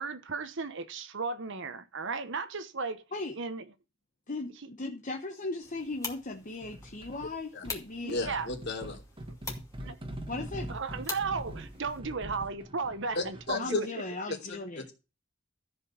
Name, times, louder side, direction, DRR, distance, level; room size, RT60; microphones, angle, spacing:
voice 1, 0.0-3.0 3.3-3.7 8.0-8.5 9.8-10.0 10.7-13.9 14.3-14.4, right 4 dB, 65° right, 1.1 m, -35 dB
voice 2, 4.3-8.2 10.3-10.8 13.6-14.8, left 2 dB, 40° left, 1.1 m, -37 dB
sound 1, 5.6-12.0, left 4 dB, 15° left, 2.4 m, -45 dB
sound 2, 6.6-7.3 7.6-13.7, right 1 dB, 25° right, 1.3 m, -43 dB
voice 3, 8.1-9.0 13.1-13.8 14.3-14.9, left 3 dB, 60° left, 3.0 m, -34 dB
13.5 x 5.4 x 7.1 m
head